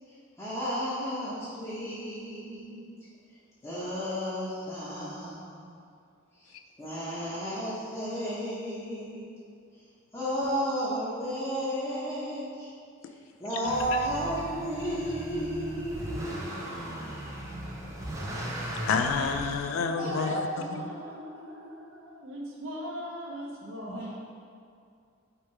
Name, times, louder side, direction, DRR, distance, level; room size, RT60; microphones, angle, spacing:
voice 1, 0.4-2.8 3.6-5.7 6.4-6.5 6.8-9.2 10.1-12.7 13.4-17.2 19.4-19.5 20.0-20.3 23.9-24.1, equal, 15° left, -12 dB, 0.8 m, -33 dB
Motor vehicle (road) / Accelerating revving vroom, 13.6-19.6, right 1 dB, 15° right, 0.5 m, -37 dB
voice 2, 18.9-20.9, left 5 dB, 80° left, 6 dB, 0.3 m, -29 dB
voice 3, 19.7-24.1, equal, 70° right, -2 dB, 0.7 m, -40 dB
3.2 x 3.2 x 4.5 m, 2.4 s
head